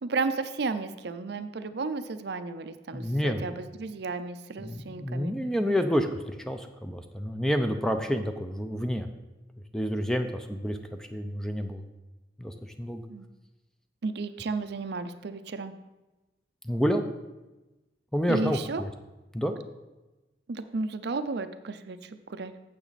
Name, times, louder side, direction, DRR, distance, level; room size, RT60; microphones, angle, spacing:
voice 1, 0.0-5.3 13.1-13.3 14.0-15.7 18.3-18.8 20.5-22.5, right 3 dB, 60° right, 10 dB, 0.5 m, -33 dB
voice 2, 2.9-3.4 4.6-9.1 9.7-10.8 11.1-11.8 12.4-13.0 16.6-17.0 18.1-18.9 19.3-19.5, equal, 5° left, 6 dB, 0.4 m, -29 dB
9.0 x 7.4 x 4.1 m, 1.1 s
head